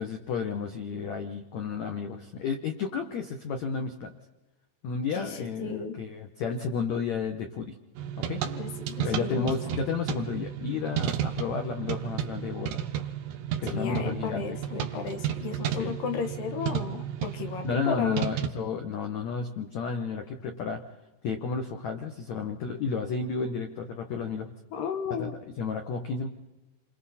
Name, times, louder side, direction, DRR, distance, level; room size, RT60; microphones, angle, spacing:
voice 1, 0.0-4.1 4.8-7.8 8.3-8.4 9.0-12.8 13.6-14.6 15.8-15.9 17.6-20.8 21.2-24.5 25.2-25.3 25.6-26.3, left 5 dB, 85° left, 5 dB, 1.5 m, -32 dB
voice 2, 5.1-6.0 8.5-9.5 13.7-18.3 24.7-25.4, left 6 dB, 65° left, 6 dB, 2.7 m, -34 dB
sound 1, 7.9-18.5, right 9 dB, 70° right, 2.0 m, -33 dB
28.0 x 23.0 x 4.3 m, 1.1 s
omnidirectional pair, 5.1 m